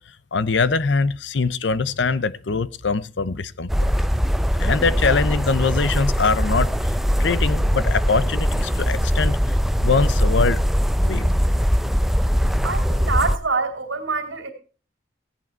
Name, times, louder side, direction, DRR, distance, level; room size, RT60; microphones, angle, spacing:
voice 1, 0.3-3.9 4.6-6.7 7.2-9.4 9.8-10.6 11.0-11.3, left 4 dB, 70° left, 0.7 m, -22 dB
sound 1, 3.7-13.4, equal, ahead, 0.5 m, -21 dB
voice 2, 12.6-14.5, right 4 dB, 85° right, 2.8 m, -25 dB
16.0 x 8.6 x 4.4 m
head